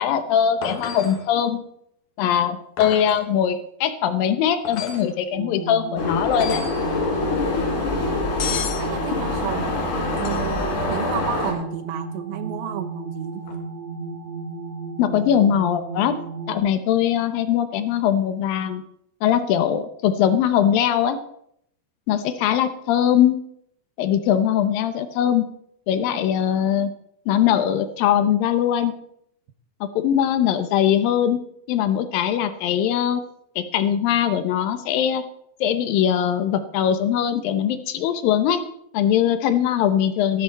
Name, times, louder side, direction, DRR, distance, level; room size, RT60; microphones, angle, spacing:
voice 1, 0.0-1.6 2.2-6.7 15.0-16.1 16.5-18.8 19.2-21.2 22.1-23.4 24.0-25.5 25.9-26.9 27.3-28.9 29.8-31.4 31.7-33.2 33.6-35.2 35.6-38.6 38.9-40.4, left 9 dB, 75° left, 10 dB, 2.3 m, -21 dB
sound 1, 0.6-1.3 2.8-3.2 4.6-5.1 6.3-6.8 8.4-8.9 10.2-10.7 13.4-13.6, left 6 dB, 60° left, 2.5 m, -32 dB
sound 2, 5.3-16.6, right 3 dB, 40° right, 3.2 m, -34 dB
sound 3, 6.0-11.5, left 3 dB, 90° left, 5.3 m, -25 dB
voice 2, 8.6-9.7 10.2-13.4, right 10 dB, 70° right, 9 dB, 2.6 m, -32 dB
13.0 x 12.5 x 4.1 m, 0.72 s
omnidirectional pair, 4.7 m